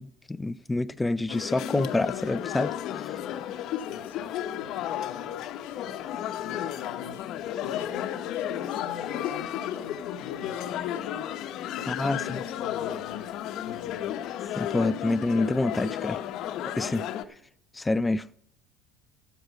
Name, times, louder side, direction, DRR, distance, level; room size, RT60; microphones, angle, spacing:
voice 1, 0.0-2.7 11.9-12.4 14.6-16.2 16.8-17.0 17.7-18.2, left 2 dB, 15° left, 0.4 m, -27 dB
sound 1, 1.3-17.2, left 11 dB, 55° left, 1.0 m, -33 dB
voice 2, 3.8-7.3 7.6-11.3 11.7-14.2, left 8 dB, 80° left, 1.1 m, -43 dB
14.0 x 7.9 x 6.1 m
hypercardioid pair, 75°, 0 cm